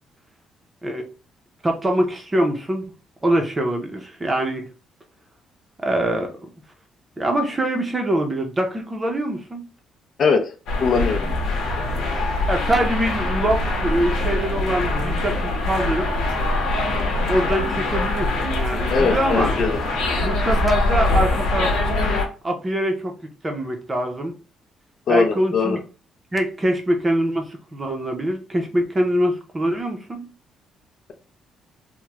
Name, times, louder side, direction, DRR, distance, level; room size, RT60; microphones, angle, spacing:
voice 1, 1.6-2.8 3.2-4.7 5.8-6.5 7.2-9.6 12.5-16.1 17.3-19.5 20.2-21.7 22.4-23.1 23.4-24.3 25.1-25.8 26.3-27.4 27.7-30.3, right 1 dB, 20° right, 0.6 m, -23 dB
voice 2, 10.2-10.5 10.8-11.2 18.9-19.8 25.1-25.8, left 4 dB, 50° left, 0.5 m, -20 dB
sound 1, 10.7-22.2, left 2 dB, 85° left, 0.9 m, -23 dB
3.0 x 2.1 x 3.4 m
cardioid pair, 130°, 0 cm